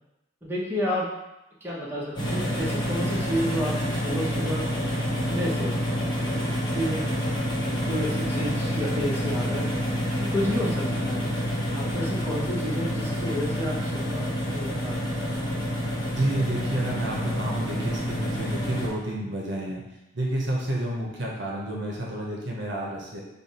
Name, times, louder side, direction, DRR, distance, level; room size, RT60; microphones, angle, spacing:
voice 1, 0.4-1.1 1.6-4.7 5.2-5.8 6.4-7.4 7.9-9.6 10.2-11.2 11.7-15.0, equal, 10° right, -7 dB, 0.8 m, -30 dB
sound 1, 2.2-18.9, equal, 25° left, 0.9 m, -28 dB
voice 2, 16.2-19.8 20.1-23.2, right 1 dB, 65° right, -2 dB, 0.8 m, -30 dB
3.4 x 2.2 x 4.1 m, 0.93 s
head